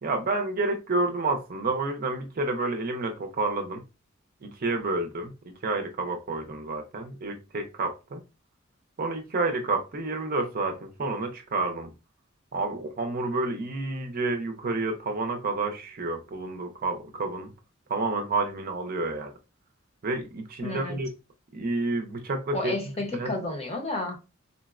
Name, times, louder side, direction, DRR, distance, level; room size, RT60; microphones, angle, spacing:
voice 1, 0.0-3.8 4.4-8.2 9.0-11.9 12.5-17.5 17.9-19.3 20.0-21.1 21.5-22.7 23.2-23.3, right 2 dB, 45° right, 0.5 m, -29 dB
voice 2, 20.6-21.0 22.5-24.2, left 2 dB, 30° left, 0.7 m, -31 dB
3.8 x 2.0 x 2.3 m
head